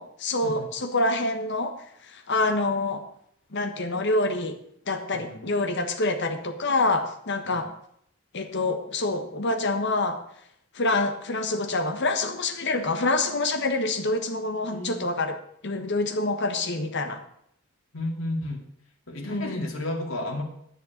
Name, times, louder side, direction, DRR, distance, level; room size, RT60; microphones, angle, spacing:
voice 1, 0.0-1.7 2.1-3.0 3.5-4.6 4.9-7.7 8.3-10.2 10.7-15.4 15.6-17.2 19.2-19.6, left 2 dB, 60° left, 6 dB, 1.4 m, -26 dB
voice 2, 5.1-5.5 7.5-7.7 14.7-15.0 17.9-18.6 19.1-20.4, left 1 dB, 90° left, 0 dB, 2.3 m, -32 dB
11.0 x 6.7 x 7.2 m, 0.71 s
head